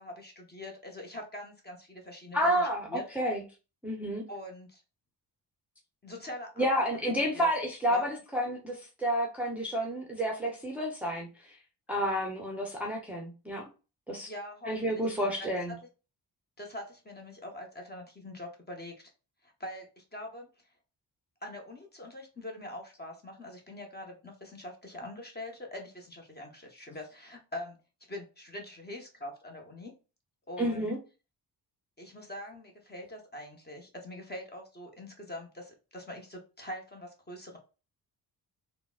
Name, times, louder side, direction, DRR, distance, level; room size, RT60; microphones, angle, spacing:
voice 1, 0.0-3.0 4.3-4.8 6.0-6.8 7.3-7.5 7.9-8.0 14.3-15.8 16.6-19.1 19.4-20.5 21.4-27.8 28.1-29.9 30.5-30.9 32.0-37.6, left 1 dB, 25° left, 2 dB, 0.9 m, -43 dB
voice 2, 2.3-3.4 3.8-4.2 6.6-11.3 11.9-13.6 14.1-14.3 14.7-15.7 30.6-31.0, equal, 5° right, -1 dB, 0.6 m, -30 dB
3.7 x 2.1 x 2.3 m, 0.32 s
cardioid pair, 80°, 42 cm